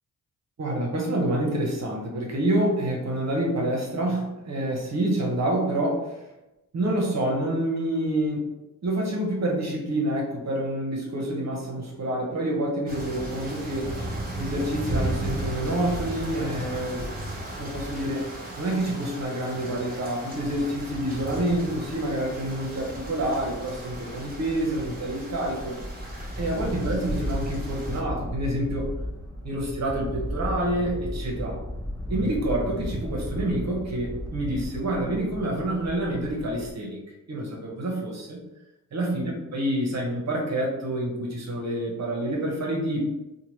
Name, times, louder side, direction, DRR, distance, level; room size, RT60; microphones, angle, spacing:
voice 1, 0.6-6.2 6.7-8.5 8.8-13.9 14.4-17.1 17.6-25.8 26.4-28.9 29.4-31.6 32.1-37.0 37.3-38.4 38.9-43.2, right 1 dB, 55° right, -1 dB, 0.9 m, -27 dB
sound 1, 12.9-28.0, right 1 dB, 25° right, 1.1 m, -35 dB
sound 2, 20.3-36.7, equal, 10° left, 0.7 m, -36 dB
2.8 x 2.2 x 3.0 m, 0.97 s
cardioid pair, 60°, 33 cm